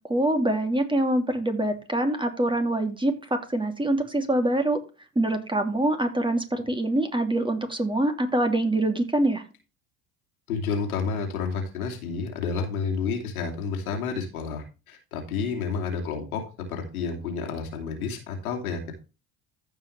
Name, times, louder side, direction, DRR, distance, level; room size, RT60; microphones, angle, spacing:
voice 1, 0.1-4.8 5.2-9.4, right 1 dB, 10° right, 5 dB, 2.9 m, -25 dB
voice 2, 10.5-16.4 16.7-18.9, left 5 dB, 85° left, 2 dB, 2.9 m, -30 dB
15.0 x 5.5 x 3.3 m, 0.30 s
hypercardioid pair, 65°, 42 cm